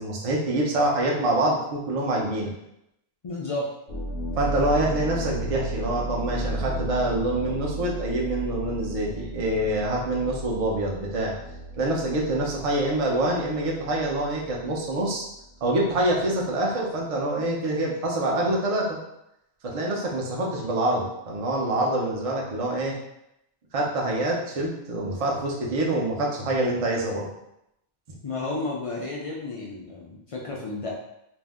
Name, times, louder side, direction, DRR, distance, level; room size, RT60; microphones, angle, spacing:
voice 1, 0.0-2.5 4.4-11.3 11.8-15.3 15.6-19.0 19.6-22.9 23.7-27.3, right 1 dB, 40° right, -2 dB, 0.6 m, -26 dB
voice 2, 3.2-3.7 28.2-30.9, left 2 dB, 50° left, -3 dB, 0.4 m, -32 dB
sound 1, 3.9-16.3, right 1 dB, 65° left, 0.9 m, -34 dB
2.6 x 2.1 x 3.4 m, 0.81 s
omnidirectional pair, 1.1 m